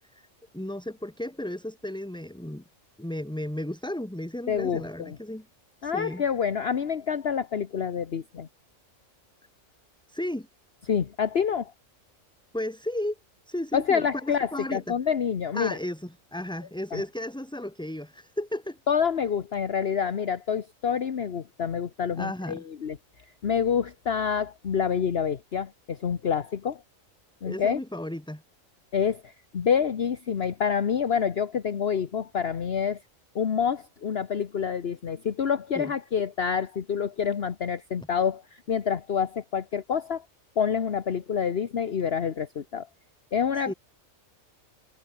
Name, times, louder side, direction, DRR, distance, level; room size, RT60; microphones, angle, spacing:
voice 1, 0.5-2.6 3.0-5.4 5.8-6.2 10.1-10.5 12.5-13.1 13.5-14.8 15.5-18.8 22.1-22.6 27.4-28.4 35.7-35.9 43.7-43.8, left 1 dB, 5° left, 1.5 m, -34 dB
voice 2, 4.5-5.2 5.8-8.5 10.9-11.7 13.7-15.8 16.9-17.0 18.9-23.0 23.4-26.8 27.4-27.8 28.9-33.0 33.3-40.2 40.6-42.9 43.3-43.7, left 7 dB, 50° left, 1.3 m, -27 dB
omnidirectional pair, 1.4 m